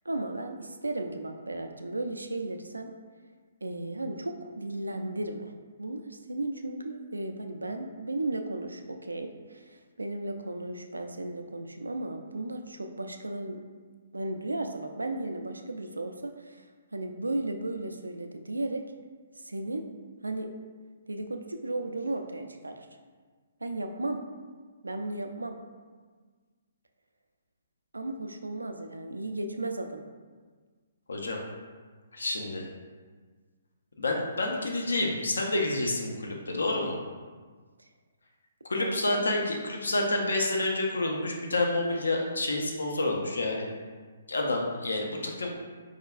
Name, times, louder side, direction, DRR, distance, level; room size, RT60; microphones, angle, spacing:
voice 1, 0.1-2.9 3.6-5.5 5.8-13.6 14.1-16.7 16.9-18.9 19.4-19.9 20.2-20.5 21.1-22.9 23.6-24.2 24.8-25.6 27.9-30.0 38.8-39.2, right 2 dB, 80° right, 5 dB, 0.3 m, -35 dB
voice 2, 31.1-31.4 32.1-32.7 34.0-37.0 38.7-43.7 44.3-45.5, left 2 dB, 70° left, 1 dB, 0.5 m, -29 dB
4.8 x 2.2 x 2.3 m, 1.5 s
figure-of-eight pair, 130°, 0 cm